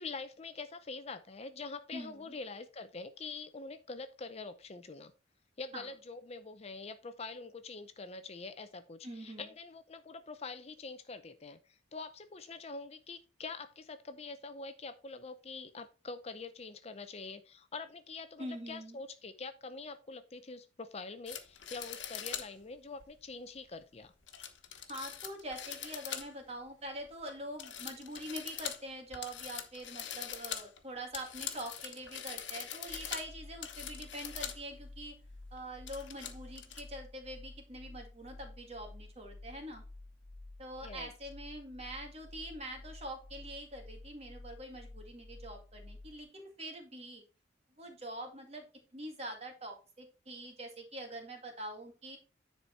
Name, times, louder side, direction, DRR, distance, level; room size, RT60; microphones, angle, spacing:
voice 1, 0.0-5.1 5.6-24.1 40.8-41.1, left 4 dB, 35° left, 10 dB, 0.5 m, -45 dB
voice 2, 1.9-2.4 5.7-5.8 9.0-9.5 18.4-19.0 24.9-35.1 35.5-39.8 40.6-47.2 47.8-48.6 48.9-52.2, right 1 dB, 35° right, 3 dB, 2.1 m, -44 dB
sound 1, 21.3-22.5 23.0-23.1 24.3-26.5 26.9-27.3 27.6-34.6 35.0-35.1 35.6-36.8, left 9 dB, 70° left, 1.2 m, -43 dB
sound 2, 32.9-46.2, left 2 dB, 10° left, 2.0 m, -51 dB
10.0 x 4.3 x 4.4 m, 0.33 s
head